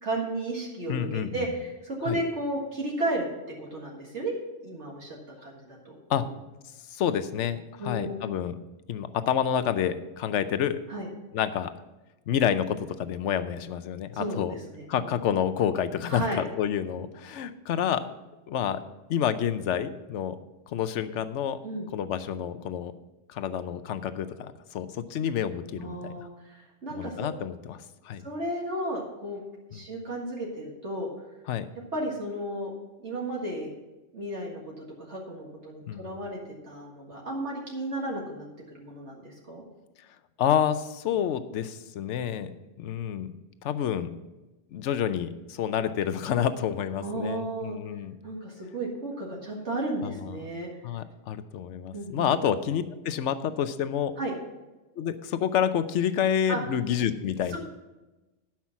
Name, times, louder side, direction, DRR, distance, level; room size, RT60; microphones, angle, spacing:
voice 1, 0.0-3.3 3.6-4.4 4.6-6.3 7.8-8.2 10.9-11.1 14.1-15.1 16.1-16.4 21.6-21.9 25.8-27.3 28.2-29.4 29.7-31.1 31.9-32.7 33.0-33.7 34.1-36.4 36.6-38.5 38.7-39.7 47.0-47.8 48.2-50.7 51.9-52.3 54.2-54.3 56.5-56.6 57.5-57.6, right 1 dB, 65° right, -2 dB, 2.1 m, -33 dB
voice 2, 0.9-1.5 2.1-2.2 6.1-6.3 6.9-8.6 8.9-10.8 11.3-11.7 12.3-14.5 14.9-18.1 18.5-18.8 19.1-20.4 20.7-21.6 21.9-22.9 23.3-26.3 27.0-27.8 28.0-28.2 29.7-29.8 31.5-31.7 35.9-36.1 40.4-43.3 43.6-44.2 44.7-48.1 50.0-50.5 50.8-54.1 55.0-57.6, left 9 dB, 70° left, 12 dB, 1.0 m, -28 dB
12.0 x 5.8 x 5.8 m, 1.1 s
omnidirectional pair, 1.3 m